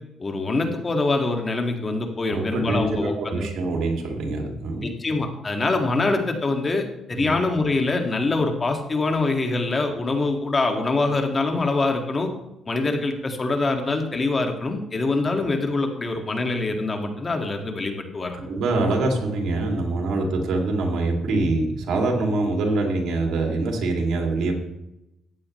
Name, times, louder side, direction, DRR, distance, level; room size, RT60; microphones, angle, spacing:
voice 1, 0.2-3.5 4.8-12.3 12.7-18.4, left 3 dB, 30° left, 3 dB, 2.1 m, -24 dB
voice 2, 2.3-4.9 7.1-7.3 18.3-24.5, right 2 dB, 75° right, 1 dB, 2.6 m, -24 dB
15.0 x 9.6 x 3.3 m, 0.87 s
cardioid pair, 90°, 0 cm